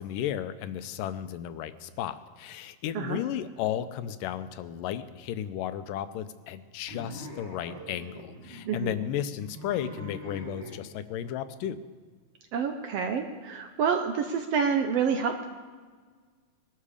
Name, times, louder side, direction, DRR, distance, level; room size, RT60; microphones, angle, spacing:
voice 1, 0.0-11.8, left 10 dB, 85° left, 11 dB, 2.3 m, -34 dB
sound 1, 6.9-10.8, equal, 30° right, 1.3 m, -43 dB
voice 2, 12.5-15.5, right 6 dB, 75° right, 5 dB, 1.4 m, -28 dB
21.0 x 12.5 x 5.0 m, 1.5 s
omnidirectional pair, 3.8 m